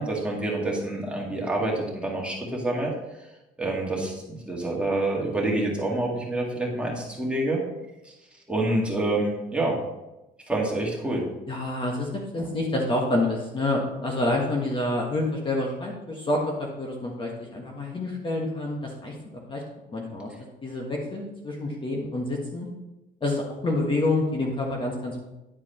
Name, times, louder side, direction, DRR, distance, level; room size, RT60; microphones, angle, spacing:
voice 1, 0.0-2.9 3.6-7.6 8.0-8.1 8.5-9.8 10.5-11.2, right 2 dB, 5° right, -3 dB, 2.2 m, -27 dB
voice 2, 11.5-19.6 19.9-20.3 20.6-22.7 23.2-25.2, left 2 dB, 30° left, -1 dB, 1.4 m, -28 dB
10.0 x 4.7 x 4.4 m, 0.99 s
cardioid pair, 110°, 17 cm